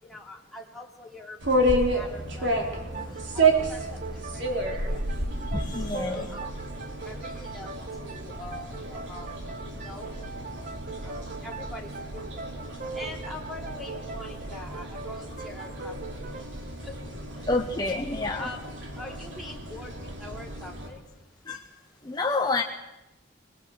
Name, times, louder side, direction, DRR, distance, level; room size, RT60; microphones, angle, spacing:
voice 1, 0.0-2.6 3.0-3.8 4.1-5.1 5.9-6.5 7.0-9.4 9.7-10.2 11.0-12.4 12.9-15.9 16.8-17.0 17.4-17.5 18.0-18.6 18.9-21.0, left 2 dB, ahead, -3 dB, 3.5 m, -43 dB
sound 1, 1.4-20.9, right 2 dB, 65° right, 4.1 m, -31 dB
sound 2, 2.7-18.1, right 4 dB, 45° right, 1.3 m, -41 dB
voice 2, 5.5-6.3 17.5-18.5 21.5-21.6 22.0-22.6, left 3 dB, 20° left, 3 dB, 1.1 m, -28 dB
22.0 x 21.5 x 8.0 m, 0.97 s
head